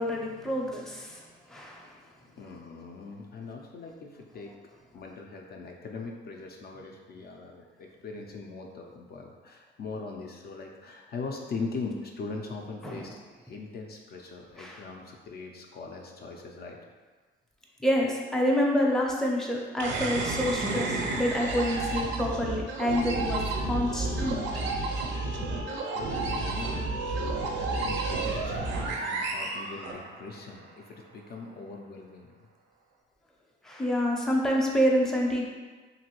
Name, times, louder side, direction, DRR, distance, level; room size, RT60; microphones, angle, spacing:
voice 1, 0.0-2.0 12.8-13.1 14.6-14.8 17.8-24.4 33.6-35.5, equal, ahead, -2 dB, 0.5 m, -28 dB
voice 2, 1.8-4.5 4.9-16.8 25.6-32.5, left 4 dB, 50° left, 1 dB, 0.4 m, -41 dB
sound 1, 19.8-30.4, right 3 dB, 70° right, 0.5 m, -31 dB
2.9 x 2.6 x 2.9 m, 1.4 s
cardioid pair, 90°, 20 cm